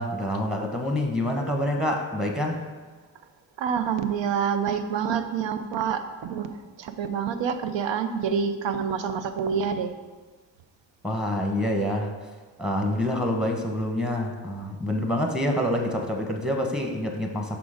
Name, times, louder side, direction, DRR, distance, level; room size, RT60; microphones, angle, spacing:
voice 1, 0.0-2.6 11.0-12.1 12.6-17.6, left 1 dB, ahead, 2 dB, 0.9 m, -27 dB
voice 2, 3.6-6.5 6.8-9.9 15.0-15.1, right 7 dB, 80° right, 9 dB, 0.6 m, -27 dB
6.0 x 3.8 x 4.9 m, 1.4 s
cardioid pair, 70°, 44 cm